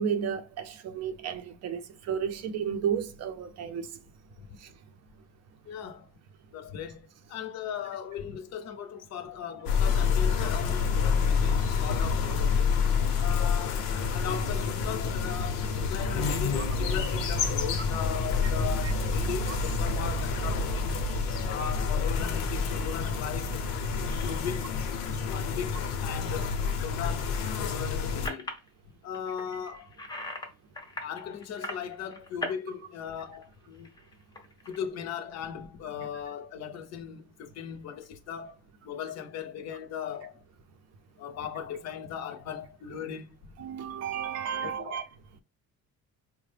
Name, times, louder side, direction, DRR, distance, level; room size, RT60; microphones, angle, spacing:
voice 1, 0.0-3.9 18.8-18.9 19.5-19.6 43.6-45.1, right 7 dB, 50° right, 0.5 m, -32 dB
voice 2, 5.7-6.1 6.5-12.7 13.2-13.8 14.1-21.0 21.4-23.7 24.2-24.9 25.3-28.5 29.0-29.9 31.0-33.9 34.7-38.6 38.8-40.4 41.2-43.4 44.6-45.0, left 8 dB, 50° left, 0.6 m, -38 dB
sound 1, 9.7-28.3, left 5 dB, 90° left, 0.8 m, -28 dB
sound 2, 23.5-23.6 24.1-24.4 24.8-25.2 27.0-28.7 29.1-30.5 30.7-32.6 32.9-34.8, left 1 dB, 15° left, 0.5 m, -40 dB
4.7 x 2.1 x 3.2 m
cardioid pair, 165°, 33 cm